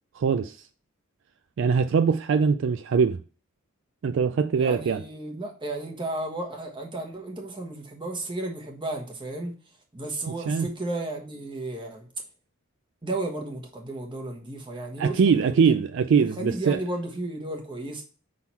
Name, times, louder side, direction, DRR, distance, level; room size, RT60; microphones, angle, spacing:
voice 1, 0.2-0.6 1.6-3.2 4.0-5.0 10.3-10.7 15.0-16.8, right 6 dB, 60° right, 0.3 m, -22 dB
voice 2, 4.5-9.5 9.9-12.1 13.0-15.6 16.4-18.0, right 2 dB, 20° right, 1.3 m, -33 dB
6.0 x 3.8 x 4.2 m
head